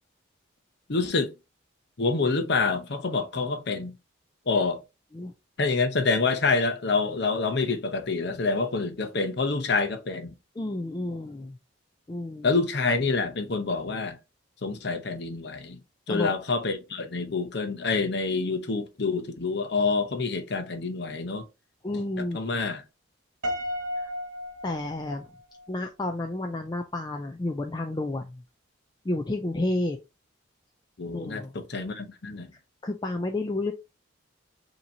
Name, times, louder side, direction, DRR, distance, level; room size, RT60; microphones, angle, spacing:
voice 1, 0.9-1.3 2.0-3.9 4.5-4.8 5.6-10.3 12.4-14.2 14.6-15.8 16.1-21.4 22.2-22.8 31.0-32.5, left 4 dB, 55° left, 0.7 m, -27 dB
voice 2, 10.6-11.6 12.1-12.6 16.1-16.3 21.8-22.4 23.9-24.1 24.6-25.3 25.7-28.4 29.0-30.0 31.1-31.5 32.8-33.7, left 2 dB, 20° left, 0.3 m, -31 dB
Piano, 23.4-25.7, left 1 dB, 55° right, 1.4 m, -34 dB
5.5 x 2.9 x 2.7 m
head